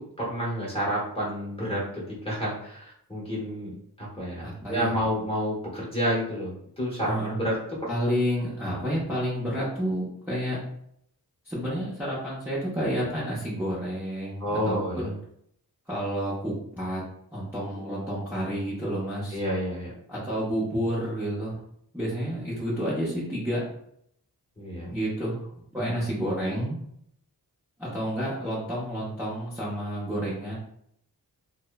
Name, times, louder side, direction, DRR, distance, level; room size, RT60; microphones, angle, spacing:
voice 1, 0.0-7.8 14.4-15.1 17.7-17.9 19.3-19.9 22.3-22.4 24.6-24.9, equal, 15° left, -5 dB, 1.0 m, -30 dB
voice 2, 4.3-4.9 7.0-7.4 7.9-10.6 11.5-15.2 15.9-17.0 17.3-19.4 20.1-21.6 21.9-23.6 24.9-25.4 25.7-26.8 27.8-30.6, equal, 5° right, -9 dB, 0.7 m, -30 dB
2.9 x 2.0 x 2.2 m, 0.70 s
wide cardioid pair, 95°, 38 cm